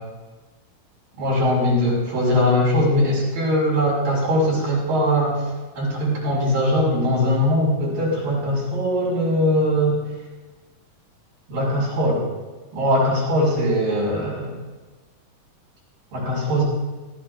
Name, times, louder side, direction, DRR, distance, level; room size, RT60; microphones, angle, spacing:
voice 1, 1.2-5.4 5.8-10.0 11.5-12.3 12.7-14.5 16.1-16.6, equal, 75° right, -5 dB, 7.6 m, -21 dB
25.5 x 15.0 x 2.6 m, 1.2 s
omnidirectional pair, 4.0 m